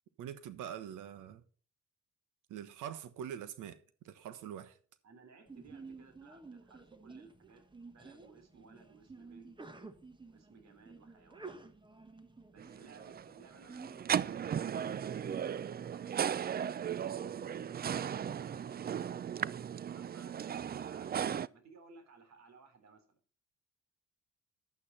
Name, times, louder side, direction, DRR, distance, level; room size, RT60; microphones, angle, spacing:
voice 1, 0.2-1.4 2.5-3.8 4.0-4.8, right 9 dB, 85° right, 1.3 m, -44 dB
voice 2, 5.0-9.5 10.3-11.6 12.5-14.7 15.1-16.4 19.8-23.2, right 4 dB, 60° right, 3.5 m, -59 dB
Sneeze, 5.5-15.5, right 3 dB, 15° right, 1.4 m, -52 dB
sound 1, 12.6-21.5, right 8 dB, 30° right, 0.4 m, -36 dB
11.0 x 8.9 x 4.2 m
cardioid pair, 90°, 30 cm